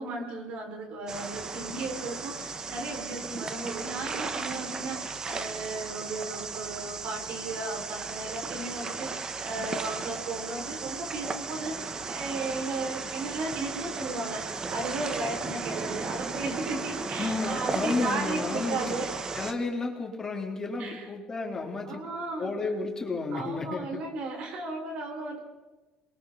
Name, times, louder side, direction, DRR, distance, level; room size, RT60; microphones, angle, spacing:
voice 1, 0.0-19.3 20.8-21.1 21.9-22.5 23.3-25.4, right 3 dB, 65° right, 1 dB, 5.8 m, -35 dB
sound 1, 1.1-19.5, right 4 dB, 35° right, 1.7 m, -35 dB
voice 2, 17.2-18.8 19.3-22.0 22.4-24.0, left 3 dB, 25° left, 1 dB, 4.0 m, -32 dB
27.5 x 22.5 x 4.3 m, 1.2 s
cardioid pair, 100°, 2 cm